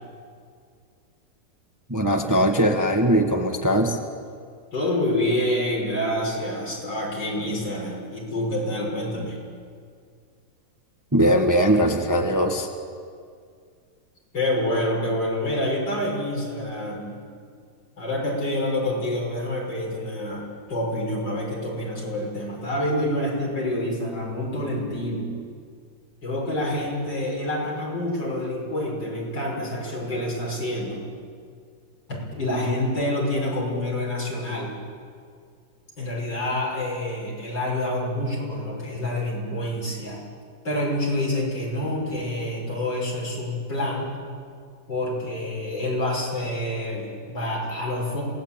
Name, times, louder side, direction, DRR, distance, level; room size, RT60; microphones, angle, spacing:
voice 1, 1.9-4.0 11.1-12.7, equal, 10° right, 3 dB, 1.5 m, -20 dB
voice 2, 4.7-9.4 14.3-17.2 18.0-25.3 26.2-31.0 32.1-34.7 36.0-40.2 40.6-44.1 44.9-48.2, left 1 dB, 70° left, -2 dB, 6.8 m, -27 dB
27.0 x 18.5 x 9.1 m, 2.2 s
omnidirectional pair, 2.0 m